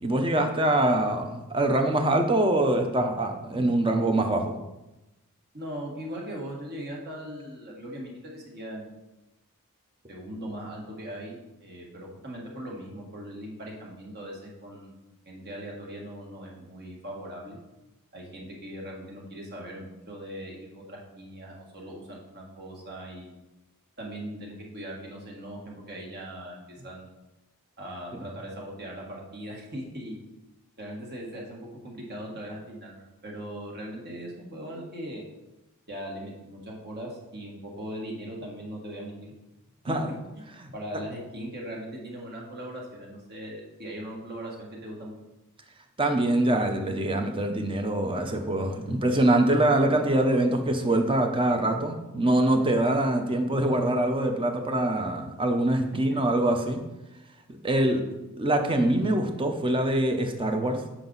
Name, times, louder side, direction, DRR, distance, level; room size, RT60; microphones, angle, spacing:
voice 1, 0.0-4.5 39.9-40.1 40.6-40.7 46.0-56.8 57.6-58.0 58.4-60.8, right 1 dB, 25° right, 5 dB, 0.7 m, -24 dB
voice 2, 5.5-9.0 10.1-15.0 15.2-17.6 18.1-23.4 24.0-27.1 27.8-30.2 30.8-35.2 35.9-39.3 39.9-40.4 40.7-45.1, equal, 50° right, -2 dB, 1.7 m, -39 dB
7.5 x 4.9 x 4.0 m, 0.98 s
head